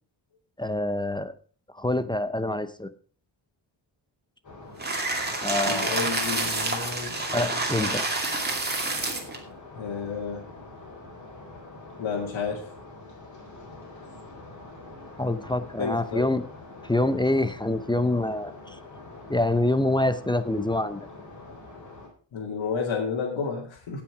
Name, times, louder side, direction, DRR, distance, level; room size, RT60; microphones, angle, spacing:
voice 1, 0.6-1.3 1.7-2.9 5.4-6.0 7.3-8.0 15.2-16.4 16.8-18.8 19.3-21.1, left 1 dB, 10° left, 12 dB, 0.6 m, -26 dB
sound 1, 4.4-22.1, left 2 dB, 40° left, 4.4 m, -45 dB
sound 2, 4.8-9.4, right 2 dB, 20° right, 2.4 m, -28 dB
voice 2, 5.6-8.0 9.7-10.5 12.0-12.7 15.8-16.3 22.3-24.0, left 5 dB, 85° left, -4 dB, 2.3 m, -31 dB
17.0 x 5.9 x 4.8 m, 0.41 s
wide cardioid pair, 140°, 45 cm